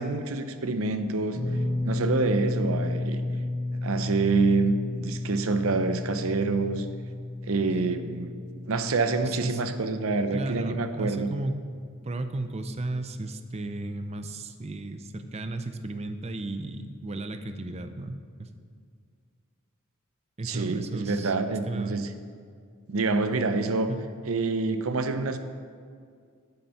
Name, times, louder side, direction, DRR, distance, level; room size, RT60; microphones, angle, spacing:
voice 1, 0.0-1.4 1.8-3.2 3.8-6.9 7.4-8.3 8.7-11.3 20.4-22.1 22.9-23.9 24.3-25.4, right 3 dB, 75° right, 9 dB, 0.6 m, -27 dB
sound 1, 1.3-13.6 13.8-14.1 15.7-15.8, left 2 dB, 15° left, 1.5 m, -33 dB
voice 2, 9.2-9.6 10.3-11.6 12.0-18.5 20.4-22.0 23.9-24.1, right 2 dB, 30° right, 9 dB, 0.5 m, -34 dB
9.2 x 6.8 x 5.6 m, 2.1 s
head